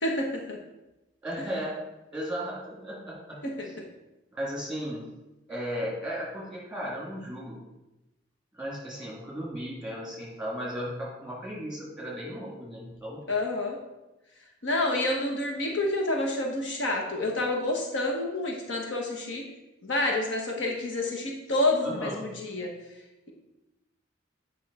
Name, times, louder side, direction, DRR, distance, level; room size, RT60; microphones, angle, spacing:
voice 1, 0.0-0.6 3.4-3.7 13.3-13.8 14.6-19.4 19.8-22.7, left 2 dB, 70° left, 1 dB, 1.2 m, -28 dB
voice 2, 1.2-1.8 2.1-3.4 3.6-3.7 4.3-5.0 5.5-7.6 8.5-13.2 21.8-22.2, equal, 5° right, -5 dB, 2.8 m, -35 dB
8.8 x 5.5 x 4.2 m, 1.0 s
head